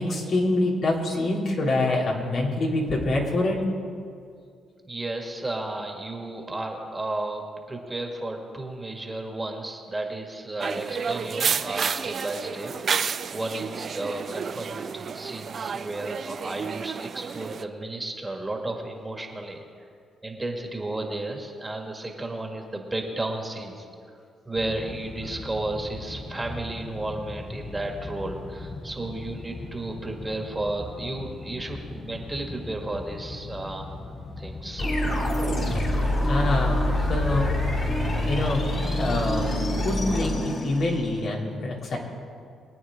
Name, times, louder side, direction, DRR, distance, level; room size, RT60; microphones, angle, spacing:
voice 1, 0.0-3.6 36.2-37.6 38.0-39.5 39.8-42.0, left 2 dB, 60° left, -3 dB, 2.9 m, -26 dB
voice 2, 4.8-19.6 20.2-24.2 24.5-33.9 34.4-34.9, right 2 dB, 15° right, 2 dB, 1.9 m, -33 dB
sound 1, 10.6-17.6, right 6 dB, 50° right, 0.5 m, -30 dB
sound 2, 24.5-38.6, left 3 dB, 25° left, 0.8 m, -39 dB
sound 3, 34.8-41.2, left 1 dB, 45° left, 3.7 m, -26 dB
23.5 x 9.2 x 3.7 m, 2.3 s
cardioid pair, 90°, 0 cm